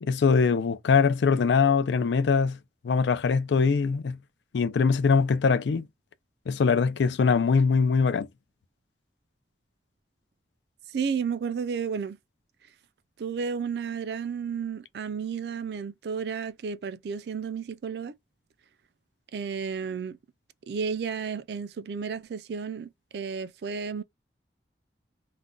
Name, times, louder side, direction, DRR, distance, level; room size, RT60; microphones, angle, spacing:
voice 1, 0.0-2.6 2.8-4.2 4.5-5.9 6.5-8.3, left 5 dB, 85° left, 0.4 m, -22 dB
voice 2, 10.9-12.2 13.2-18.1 19.3-20.2 20.7-24.0, right 6 dB, 70° right, 0.3 m, -32 dB
2.4 x 2.2 x 3.7 m
head